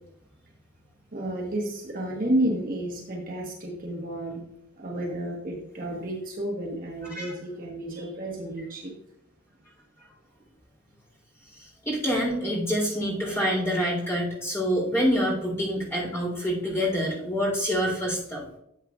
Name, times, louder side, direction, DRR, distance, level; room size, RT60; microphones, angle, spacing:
voice 1, 1.1-4.4 4.8-8.9, right 1 dB, 45° right, -2 dB, 1.3 m, -31 dB
voice 2, 11.5-18.5, equal, 15° left, -3 dB, 3.6 m, -26 dB
12.0 x 7.5 x 2.4 m, 0.77 s
head